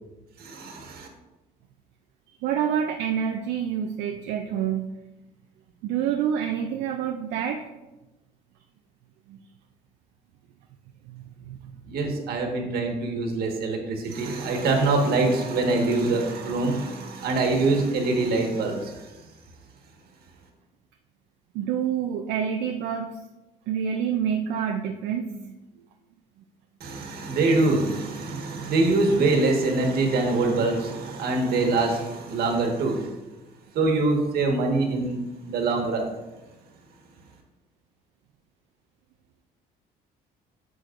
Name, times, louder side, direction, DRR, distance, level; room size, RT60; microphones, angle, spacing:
voice 1, 0.4-1.1 11.8-19.2 26.8-33.1 33.7-35.2 35.4-36.1, right 3 dB, 65° right, 2 dB, 1.5 m, -24 dB
voice 2, 2.4-4.8 5.8-7.7 9.3-9.4 11.1-11.7 21.5-23.1 23.7-25.6, right 8 dB, 90° right, 4 dB, 0.5 m, -27 dB
9.9 x 6.3 x 2.5 m, 1.1 s
cardioid pair, 110°, 17 cm